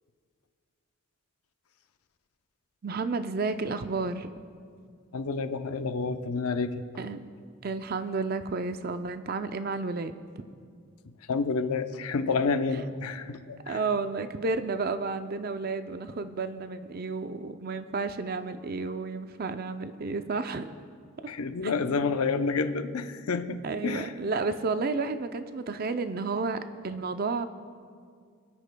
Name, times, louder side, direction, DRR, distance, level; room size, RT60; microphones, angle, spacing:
voice 1, 2.8-4.3 7.0-7.2 7.6-10.2 13.7-20.8 21.6-21.7 23.6-27.5, right 4 dB, 45° right, 10 dB, 0.5 m, -31 dB
voice 2, 5.1-6.8 11.3-13.8 21.3-24.1, left 4 dB, 90° left, 9 dB, 0.7 m, -29 dB
28.5 x 9.9 x 2.2 m, 2.2 s
head